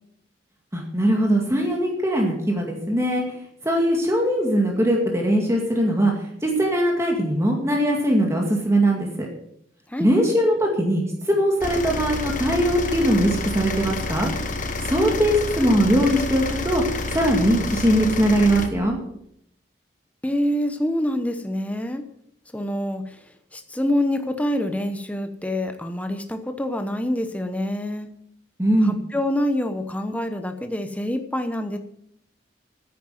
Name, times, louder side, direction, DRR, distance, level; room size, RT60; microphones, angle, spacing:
voice 1, 0.7-3.2 3.6-6.1 6.4-9.3 10.0-14.3 14.8-19.0 28.6-29.0, equal, 15° right, 0 dB, 2.1 m, -21 dB
sound 1, 11.6-18.7, left 3 dB, 40° left, 1.3 m, -29 dB
voice 2, 20.2-22.0 22.5-23.2 23.5-28.1 28.8-31.8, left 1 dB, 5° left, 7 dB, 0.8 m, -26 dB
10.0 x 9.4 x 7.6 m, 0.74 s
head